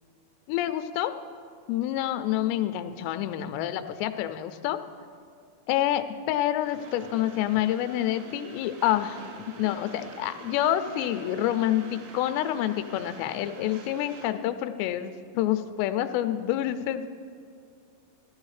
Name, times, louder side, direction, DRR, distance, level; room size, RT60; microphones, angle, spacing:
voice 1, 0.5-1.2 1.7-4.8 5.7-9.2 9.6-17.1, left 12 dB, 85° left, 10 dB, 2.8 m, -27 dB
Train, 6.7-14.3, right 4 dB, 80° right, 3.2 m, -45 dB
16.0 x 13.0 x 3.2 m, 2.4 s
omnidirectional pair, 5.0 m